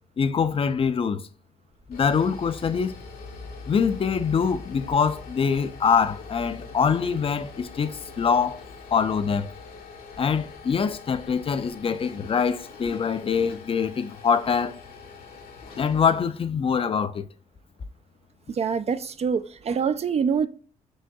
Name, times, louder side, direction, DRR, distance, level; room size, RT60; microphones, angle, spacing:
voice 1, 0.2-1.2 1.9-3.0 3.7-8.6 8.9-9.5 10.2-14.8 15.8-17.3, left 6 dB, 35° left, 0.4 m, -24 dB
sound 1, 1.7-16.2, left 4 dB, 70° left, 0.9 m, -43 dB
voice 2, 18.5-20.5, right 6 dB, 45° right, 0.4 m, -25 dB
6.1 x 2.6 x 2.3 m
supercardioid pair, 60°, 15 cm